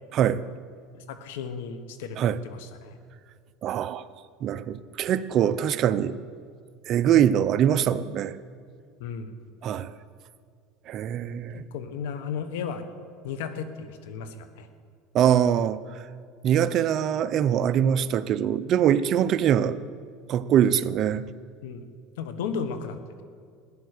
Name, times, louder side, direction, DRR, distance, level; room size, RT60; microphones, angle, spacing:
voice 1, 0.9-3.0 9.0-9.3 11.5-12.8 13.2-14.7 21.6-21.8 22.2-23.2, left 6 dB, 85° left, 10 dB, 1.2 m, -35 dB
voice 2, 3.6-4.0 4.4-6.1 6.9-8.3 9.6-9.9 10.9-11.7 15.1-15.8 16.4-19.8 20.3-21.2, right 9 dB, 45° right, 14 dB, 0.5 m, -23 dB
14.5 x 10.5 x 6.7 m, 2.1 s
supercardioid pair, 125°, 0 cm